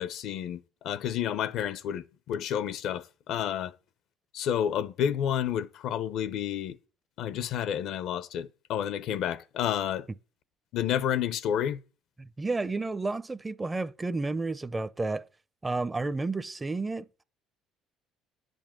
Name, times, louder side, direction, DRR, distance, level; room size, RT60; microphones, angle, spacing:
voice 1, 0.0-3.7 4.3-6.8 7.2-10.1 10.7-11.8, left 9 dB, 70° left, 0.7 m, -30 dB
voice 2, 12.2-15.3 15.6-17.2, right 3 dB, 20° right, 0.5 m, -31 dB
10.5 x 5.3 x 7.5 m
cardioid pair, 100°, 0 cm